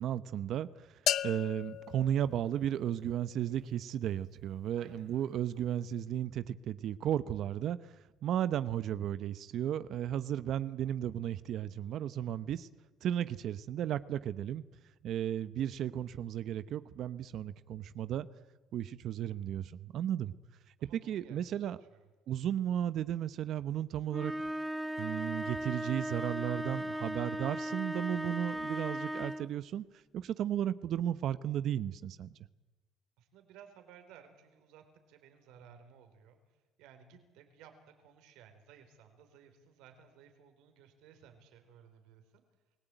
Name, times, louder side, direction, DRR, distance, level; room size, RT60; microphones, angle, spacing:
voice 1, 0.0-8.0 8.2-12.7 13.0-14.6 15.0-18.3 18.7-20.3 21.0-21.8 22.3-24.3 25.0-29.8 30.1-32.3, right 10 dB, 60° right, 15 dB, 0.8 m, -34 dB
sound 1, 1.1-3.0, left 11 dB, 65° left, 0.8 m, -35 dB
voice 2, 4.8-5.4 20.8-21.6 21.9-22.0 33.2-42.4, right 8 dB, 85° right, 7 dB, 4.3 m, -58 dB
sound 2, 24.1-29.6, right 1 dB, 5° right, 1.3 m, -37 dB
29.0 x 17.0 x 9.1 m, 1.2 s
cardioid pair, 100°, 0 cm